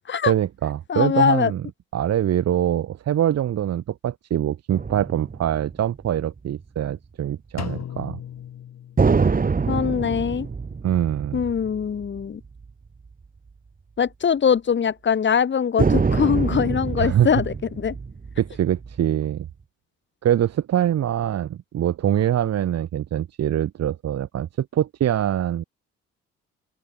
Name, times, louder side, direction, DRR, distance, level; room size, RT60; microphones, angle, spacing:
voice 1, 0.2-1.6 1.9-8.2 10.8-11.4 17.0-17.3 18.4-19.5 20.2-25.6, right 11 dB, 60° right, 1.8 m, -23 dB
voice 2, 0.9-1.5 9.7-10.5 11.3-12.4 14.0-17.9, left 7 dB, 40° left, 1.6 m, -22 dB
sound 1, 4.7-6.6 9.0-12.7 13.1-13.2 15.8-19.5, right 5 dB, 30° right, 2.1 m, -25 dB
Drum, 7.6-9.5, left 10 dB, 60° left, 7.5 m, -36 dB
open air
supercardioid pair, 65°, 29 cm